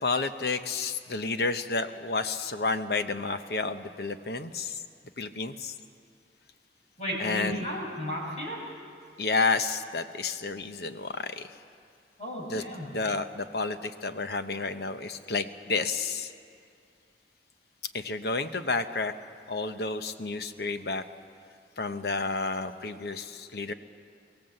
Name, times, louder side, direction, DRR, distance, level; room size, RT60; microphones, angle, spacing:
voice 1, 0.0-4.8 5.2-5.7 7.2-7.7 9.2-11.5 12.5-12.6 12.9-16.3 17.9-19.1 19.5-21.0 21.8-23.7, left 3 dB, 60° left, 9 dB, 0.9 m, -30 dB
voice 2, 7.0-8.6 12.2-12.9, equal, 40° left, -4 dB, 6.5 m, -34 dB
23.5 x 17.0 x 7.8 m, 2.3 s
head